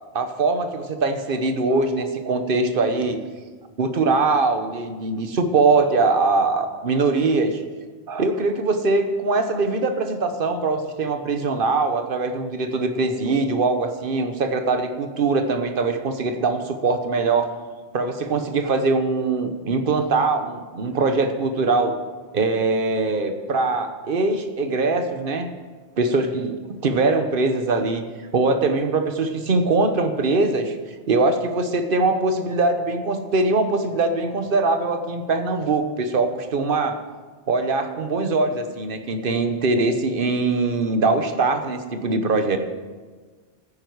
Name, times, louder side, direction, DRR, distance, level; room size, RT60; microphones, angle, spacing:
voice 1, 0.1-3.2 3.8-7.6 8.1-17.5 17.9-22.0 22.3-25.5 26.0-26.6 26.8-28.0 28.3-30.8 31.1-37.0 37.5-42.6, right 3 dB, 50° right, 8 dB, 1.1 m, -22 dB
14.0 x 9.8 x 4.7 m, 1.4 s
omnidirectional pair, 1.3 m